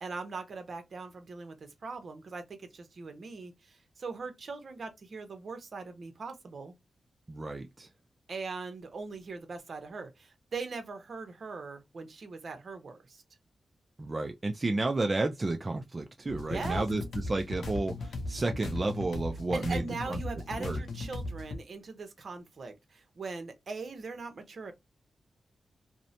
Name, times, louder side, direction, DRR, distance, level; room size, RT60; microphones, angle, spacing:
voice 1, 0.0-6.7 8.3-13.2 16.5-16.8 19.5-24.7, right 4 dB, 60° right, 0.8 m, -40 dB
voice 2, 7.3-7.9 14.0-20.2 20.6-20.8, right 2 dB, 30° right, 0.3 m, -32 dB
sound 1, 16.3-21.6, left 2 dB, 80° left, 0.6 m, -37 dB
2.7 x 2.1 x 2.5 m
cardioid pair, 85°, 0 cm